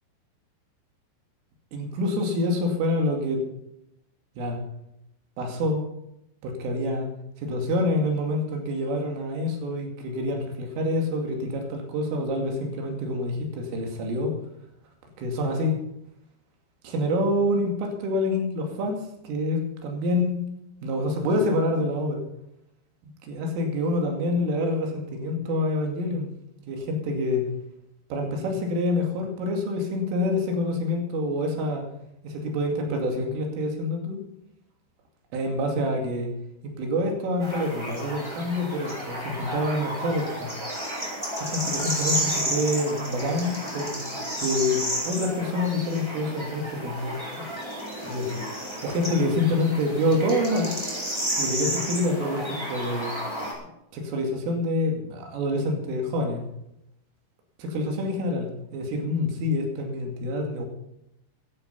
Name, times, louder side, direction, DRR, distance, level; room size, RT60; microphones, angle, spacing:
voice 1, 1.7-3.4 4.4-4.6 5.4-5.8 6.4-7.1 7.4-14.3 15.2-15.7 16.8-20.4 20.8-22.2 23.0-26.3 26.7-27.5 28.1-31.9 32.2-34.2 35.3-36.3 36.6-40.5 41.4-44.1 44.4-47.2 48.0-48.4 48.8-50.8 51.4-53.1 53.9-56.4 57.6-60.7, left 1 dB, 85° right, 3 dB, 5.1 m, -27 dB
sound 1, 37.4-53.5, equal, 5° right, 3.6 m, -32 dB
14.5 x 11.0 x 5.4 m, 0.82 s
omnidirectional pair, 5.6 m